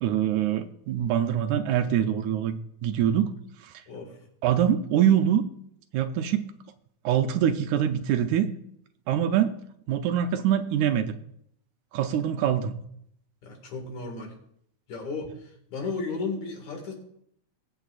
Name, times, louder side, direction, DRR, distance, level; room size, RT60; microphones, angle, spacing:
voice 1, 0.0-3.3 3.6-3.7 4.4-5.4 5.9-6.5 7.0-8.5 9.1-9.6 9.9-11.1 11.9-12.8, right 10 dB, 80° right, 7 dB, 2.0 m, -24 dB
voice 2, 3.9-4.2 13.4-14.4 14.9-16.9, left 4 dB, 70° left, 2 dB, 3.4 m, -34 dB
22.0 x 7.7 x 2.5 m, 0.72 s
omnidirectional pair, 3.6 m